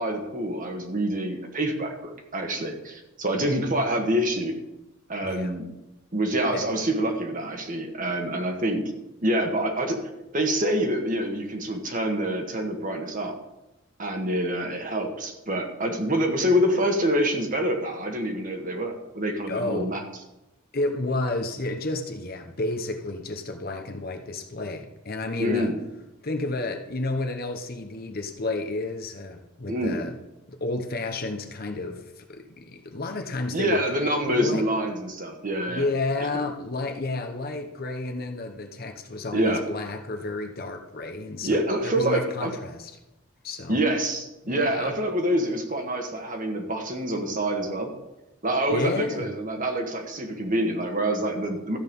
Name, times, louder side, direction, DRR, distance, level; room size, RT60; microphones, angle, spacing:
voice 1, 0.0-4.5 5.1-5.6 6.1-8.8 9.2-10.0 10.3-13.4 14.0-20.0 25.4-25.8 29.7-30.0 33.5-35.9 39.3-39.6 41.4-42.5 43.7-47.9 48.4-51.8, right 1 dB, 40° right, 4 dB, 1.6 m, -26 dB
voice 2, 5.2-5.5 6.5-6.7 19.5-19.9 20.7-25.7 26.2-30.2 30.5-33.8 34.2-34.7 35.7-42.9 43.4-43.8 44.4-44.9 48.7-49.3, left 2 dB, 45° left, 4 dB, 1.0 m, -31 dB
13.5 x 8.1 x 5.4 m, 0.96 s
head